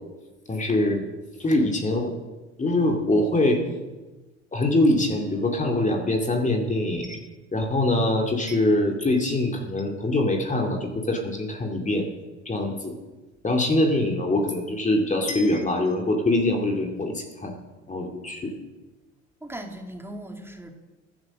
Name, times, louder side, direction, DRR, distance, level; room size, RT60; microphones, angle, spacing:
voice 1, 0.5-1.1 1.4-2.1 2.6-3.6 4.5-7.2 7.5-12.1 12.5-12.9 13.4-17.5 17.9-18.5, left 1 dB, 20° left, 3 dB, 2.4 m, -23 dB
voice 2, 19.4-20.7, right 1 dB, 5° right, 4 dB, 2.5 m, -38 dB
14.0 x 11.0 x 6.7 m, 1.2 s
hypercardioid pair, 70°, 36 cm